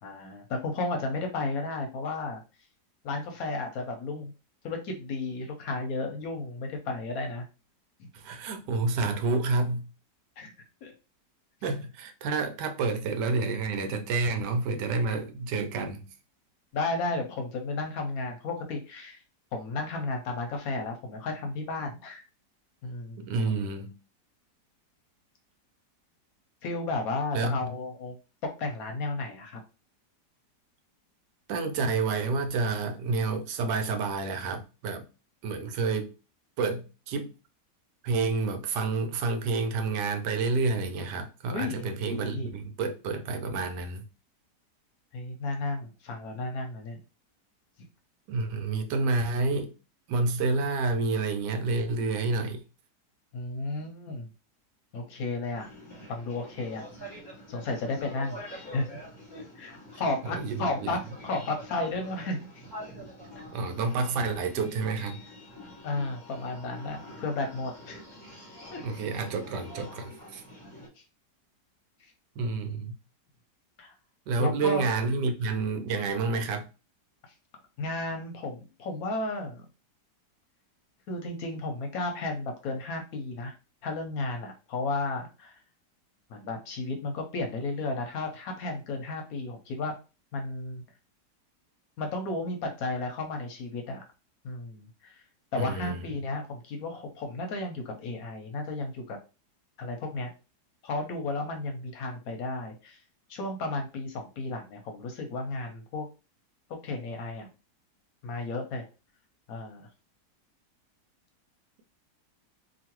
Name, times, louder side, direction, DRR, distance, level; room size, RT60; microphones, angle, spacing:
voice 1, 0.0-2.4 3.0-4.3 4.6-7.5 8.0-8.1 10.4-10.5 10.8-10.9 16.7-19.2 19.5-22.2 22.8-23.3 26.6-28.2 28.6-29.6 41.5-42.5 45.1-47.0 53.3-54.3 54.9-55.7 56.1-57.2 57.5-58.9 59.3-62.7 63.4-63.5 65.8-68.0 68.7-68.8 71.0-71.1 72.0-72.1 73.8-73.9 74.4-74.9 77.8-79.7 81.1-83.5 83.8-85.6 86.3-90.0 90.3-90.8 92.0-94.0 94.4-95.2 95.5-99.2 99.8-100.3 100.8-103.0 103.3-106.1 106.8-107.5 108.2-108.9 109.5-109.9, left 2 dB, 65° left, 1.0 m, -33 dB
voice 2, 8.1-9.9 11.6-16.1 23.2-24.0 27.3-27.7 31.5-35.1 35.4-36.1 36.6-37.3 38.0-44.0 48.3-49.7 50.1-52.6 60.2-61.0 63.5-65.2 68.8-70.4 72.4-73.0 74.3-76.7 95.6-96.0, right 3 dB, 80° right, 1.2 m, -29 dB
sound 1, 55.5-70.9, equal, 15° left, 1.1 m, -45 dB
3.0 x 2.4 x 2.9 m
omnidirectional pair, 1.8 m